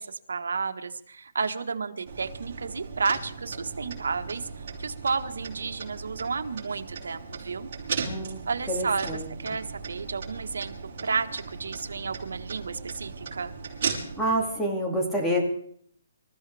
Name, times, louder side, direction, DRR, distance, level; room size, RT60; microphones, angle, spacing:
voice 1, 0.0-4.5 4.8-7.7 8.5-10.7 11.0-13.5, right 5 dB, 85° right, 7 dB, 1.5 m, -32 dB
sound 1, 2.1-14.4, right 5 dB, 40° right, 5.7 m, -37 dB
voice 2, 8.0-8.4 8.7-9.6 14.2-15.4, equal, 5° left, -1 dB, 2.5 m, -28 dB
26.5 x 14.5 x 3.5 m, 0.64 s
hypercardioid pair, 165°, 0 cm